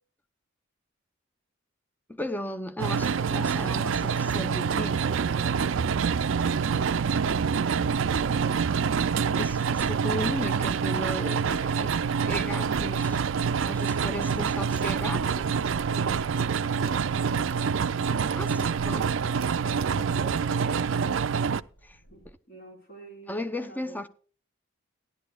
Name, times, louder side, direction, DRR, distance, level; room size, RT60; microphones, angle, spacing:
voice 1, 2.1-5.0 9.4-11.9 12.2-13.2 13.6-15.4 18.3-19.1 21.8-22.0 23.3-24.1, left 1 dB, 10° left, 0.6 m, -35 dB
sound 1, 2.8-21.6, right 6 dB, 60° right, 0.4 m, -26 dB
sound 2, 5.5-22.3, right 1 dB, 70° left, 4.4 m, -50 dB
voice 2, 22.1-24.0, right 2 dB, 50° left, 4.8 m, -49 dB
16.5 x 11.0 x 2.3 m
head